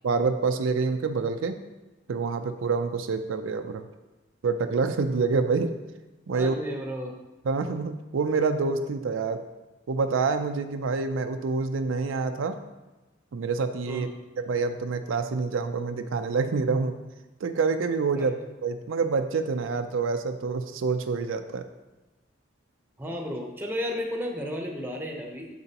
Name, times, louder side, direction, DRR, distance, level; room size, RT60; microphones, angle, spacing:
voice 1, 0.0-1.6 2.1-3.9 4.4-5.7 6.3-6.6 7.5-9.5 9.9-12.6 13.3-14.1 14.4-17.0 17.4-21.7, right 4 dB, 80° right, 8 dB, 0.4 m, -27 dB
voice 2, 6.3-7.1 13.9-14.1 18.1-18.3 23.0-25.5, equal, 10° right, 1 dB, 0.8 m, -33 dB
7.6 x 6.7 x 2.9 m, 1.1 s
head